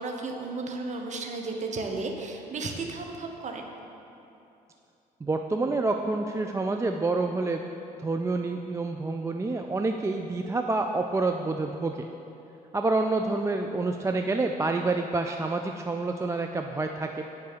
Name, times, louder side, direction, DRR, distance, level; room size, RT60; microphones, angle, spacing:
voice 1, 0.0-3.7, right 3 dB, 35° right, 2 dB, 1.2 m, -34 dB
voice 2, 5.2-7.6 8.0-12.1 12.7-17.2, right 3 dB, 15° right, 4 dB, 0.4 m, -28 dB
9.3 x 4.6 x 7.1 m, 2.8 s
figure-of-eight pair, 50°, 21 cm